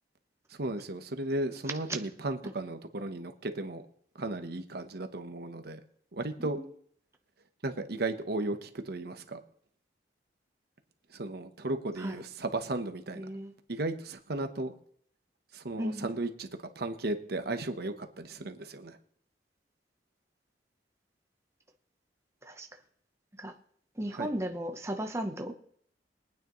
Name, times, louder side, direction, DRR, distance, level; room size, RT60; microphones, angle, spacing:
voice 1, 0.5-3.8 4.2-5.8 6.1-6.6 7.6-9.4 11.1-13.2 13.7-14.7 15.5-19.0 24.2-24.3, right 2 dB, 60° right, 7 dB, 1.0 m, -35 dB
voice 2, 13.1-13.5 15.8-16.1 22.4-22.7 23.4-23.5 24.0-25.5, equal, 15° right, 4 dB, 0.9 m, -35 dB
22.5 x 9.3 x 3.1 m, 0.62 s
head